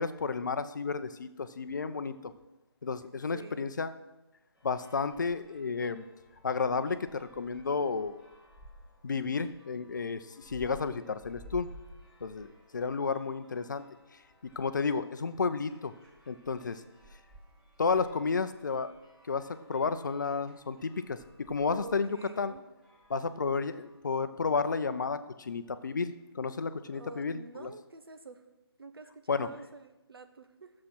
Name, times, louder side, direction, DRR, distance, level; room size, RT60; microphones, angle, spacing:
voice 1, 0.0-2.3 2.8-3.9 4.6-6.0 6.4-8.2 9.0-11.7 12.2-13.8 14.4-15.9 16.3-16.8 17.8-18.9 19.3-22.5 23.1-27.7 29.3-29.5, left 5 dB, 45° left, 12 dB, 0.7 m, -32 dB
voice 2, 3.3-3.7 21.8-22.6 26.9-28.4 28.8-30.7, right 2 dB, 60° right, 8 dB, 1.2 m, -47 dB
sound 1, 4.5-24.0, equal, 5° right, 1.3 m, -56 dB
12.5 x 7.5 x 6.1 m, 1.0 s
figure-of-eight pair, 150°, 14 cm